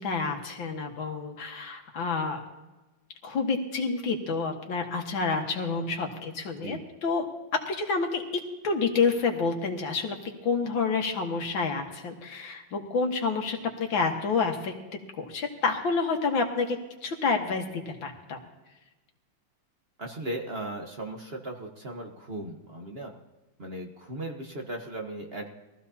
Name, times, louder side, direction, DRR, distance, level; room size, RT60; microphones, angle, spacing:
voice 1, 0.0-2.4 3.2-7.3 7.5-10.2 10.4-14.7 15.2-16.8 17.0-18.4, left 4 dB, 85° left, 3 dB, 2.3 m, -28 dB
voice 2, 20.0-23.1 23.6-25.5, right 1 dB, 35° right, 2 dB, 1.3 m, -37 dB
21.5 x 14.5 x 2.8 m, 1.1 s
omnidirectional pair, 2.1 m